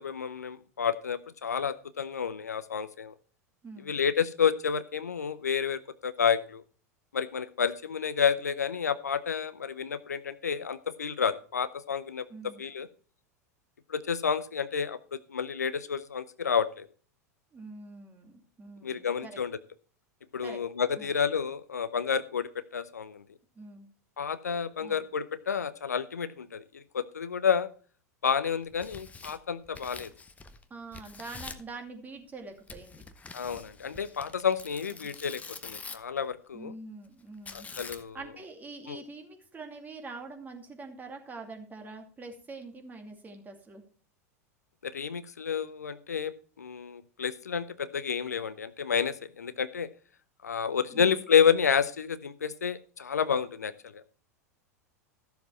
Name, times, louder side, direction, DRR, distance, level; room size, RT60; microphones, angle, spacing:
voice 1, 0.0-3.1 3.8-6.6 7.1-12.2 12.6-12.9 13.9-16.9 18.8-19.6 20.3-23.2 24.2-27.7 28.2-30.1 33.3-36.7 37.5-38.2 38.9-39.0 44.8-49.9 50.4-54.0, left 7 dB, 80° left, 15 dB, 0.6 m, -30 dB
voice 2, 3.6-4.0 12.3-12.6 17.5-19.4 20.4-20.6 21.0-21.2 23.6-23.9 24.8-25.0 30.7-33.0 35.0-35.1 36.5-37.7 38.1-43.8 50.9-51.2, right 3 dB, 20° right, 4 dB, 2.5 m, -45 dB
Tearing, 28.6-30.6 30.9-31.7 32.7-36.2 37.5-38.3, left 4 dB, 15° left, 1.0 m, -45 dB
13.5 x 7.1 x 4.4 m, 0.41 s
figure-of-eight pair, 90°, 9 cm